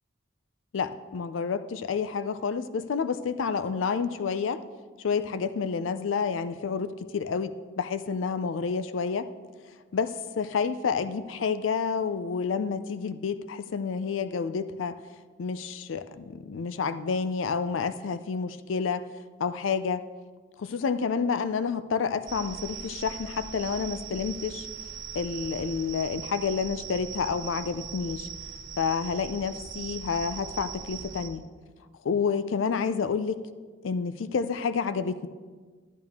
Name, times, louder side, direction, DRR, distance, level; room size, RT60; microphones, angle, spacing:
voice 1, 0.7-4.6 5.0-7.5 7.8-9.3 9.9-15.0 15.4-19.0 19.4-20.0 20.6-24.7 25.1-28.3 28.8-31.5 32.0-33.4 33.8-35.3, left 5 dB, 80° left, 13 dB, 0.4 m, -29 dB
sound 1, 22.3-31.3, right 7 dB, 65° right, 1.7 m, -40 dB
10.5 x 10.5 x 3.6 m, 1.5 s
head